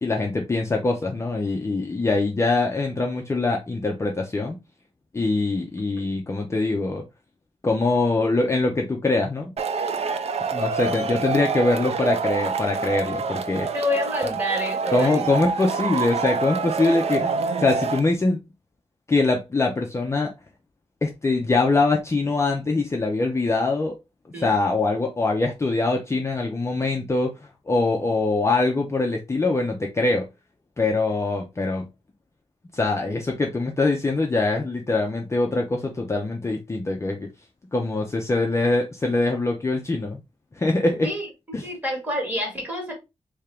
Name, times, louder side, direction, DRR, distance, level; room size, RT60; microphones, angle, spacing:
voice 1, 0.0-4.6 5.1-7.0 7.6-9.5 10.5-13.7 14.9-17.3 17.6-18.4 19.1-20.3 21.0-23.9 24.4-30.2 30.8-31.9 32.7-37.3 37.7-40.2 40.6-41.1 41.5-41.7, left 3 dB, 25° left, 0.5 m, -23 dB
Male speech man speaking / Shout / Clapping, 9.6-18.0, right 5 dB, 60° right, 0.4 m, -26 dB
voice 2, 13.7-15.2 24.3-24.5 41.0-41.3 41.6-42.9, left 1 dB, 15° right, 1.4 m, -28 dB
3.5 x 2.8 x 3.3 m
wide cardioid pair, 175°, 12 cm